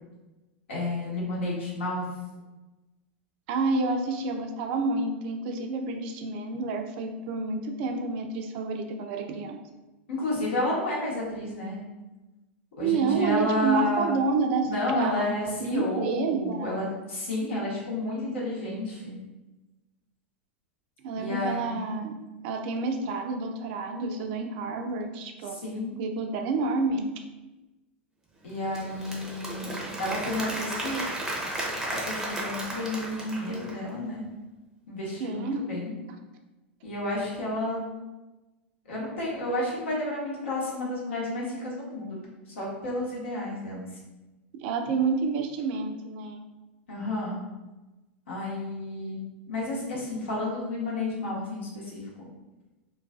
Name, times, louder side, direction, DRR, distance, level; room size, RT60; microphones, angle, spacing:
voice 1, 0.7-2.0 10.1-11.8 12.8-14.1 14.6-19.1 21.2-21.8 25.5-25.9 28.4-29.7 30.0-31.0 31.9-34.2 34.9-35.9 36.8-37.9 38.9-42.2 42.6-43.9 46.9-47.4 48.3-52.3, left 1 dB, 75° left, -5 dB, 0.9 m, -31 dB
voice 2, 3.5-9.6 12.8-16.8 21.0-22.1 22.4-25.5 26.0-27.0 35.2-35.7 44.5-46.4, right 3 dB, 55° right, 4 dB, 0.4 m, -29 dB
Applause / Crowd, 28.5-33.9, right 1 dB, 5° right, 0.6 m, -34 dB
2.4 x 2.2 x 2.3 m, 1.1 s
hypercardioid pair, 100°, 6 cm